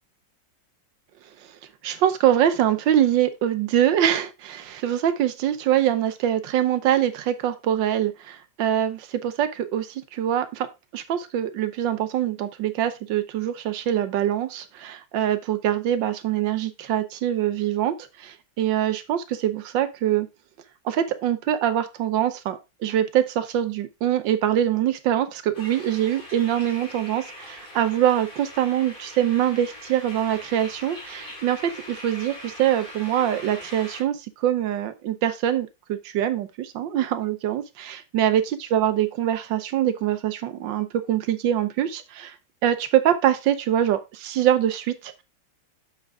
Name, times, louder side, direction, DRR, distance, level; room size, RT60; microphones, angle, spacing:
voice 1, 1.8-20.3 20.8-42.3 42.6-45.2, right 11 dB, 85° right, 11 dB, 1.5 m, -24 dB
sound 1, 25.5-34.0, left 1 dB, 30° left, 2.4 m, -41 dB
7.1 x 5.8 x 3.6 m, 0.25 s
omnidirectional pair, 1.9 m